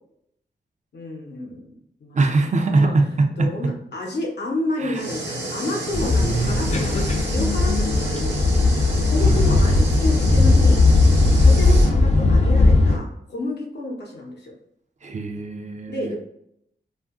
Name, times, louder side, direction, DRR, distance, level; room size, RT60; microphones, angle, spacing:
voice 1, 0.9-2.2 2.5-2.9 3.4-8.4 9.1-10.8 11.4-14.5 15.9-16.2, left 1 dB, 70° left, 0 dB, 0.8 m, -30 dB
voice 2, 2.1-3.7 4.8-5.1 6.2-6.9 9.2-9.5 15.0-16.2, right 3 dB, 40° right, 4 dB, 0.4 m, -22 dB
sound 1, 4.9-11.9, right 2 dB, 80° right, 0.7 m, -31 dB
sound 2, 5.9-13.0, left 2 dB, 40° left, 0.4 m, -17 dB
2.6 x 2.4 x 2.4 m, 0.75 s
cardioid pair, 75°, 18 cm